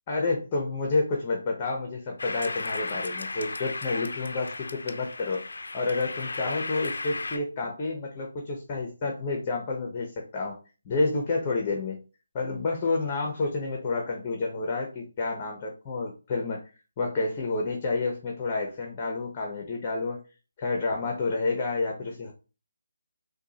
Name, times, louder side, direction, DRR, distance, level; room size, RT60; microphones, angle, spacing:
voice 1, 0.1-5.4 5.7-10.6 10.8-12.0 12.3-16.6 17.0-20.2 20.6-22.3, left 3 dB, 25° left, 1 dB, 0.7 m, -29 dB
sound 1, 2.2-7.4, left 3 dB, 75° left, 0.5 m, -35 dB
4.5 x 2.3 x 2.8 m, 0.33 s
figure-of-eight pair, 155°, 0 cm